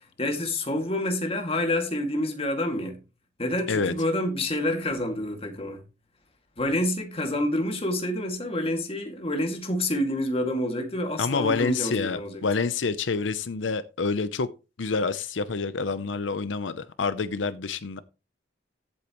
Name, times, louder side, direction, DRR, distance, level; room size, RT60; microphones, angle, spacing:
voice 1, 0.0-3.0 3.4-5.8 6.6-12.5, left 1 dB, 30° left, 2.2 m, -28 dB
voice 2, 11.2-14.5 14.8-18.0, left 4 dB, 90° left, 0.7 m, -27 dB
15.0 x 8.4 x 3.1 m
head